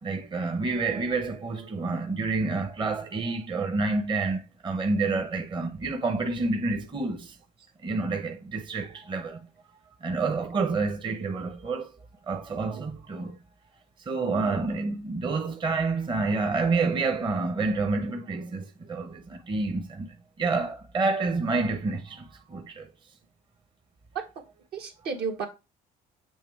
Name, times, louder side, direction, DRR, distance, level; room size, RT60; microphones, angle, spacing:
voice 1, 0.0-7.3 7.8-9.4 10.0-11.9 12.3-13.4 14.1-22.9, right 3 dB, 30° right, 0.7 m, -28 dB
voice 2, 14.2-14.6 24.1-24.2 24.7-25.5, right 5 dB, 70° right, 1.5 m, -33 dB
7.3 x 2.9 x 4.5 m
cardioid pair, 110°, 17 cm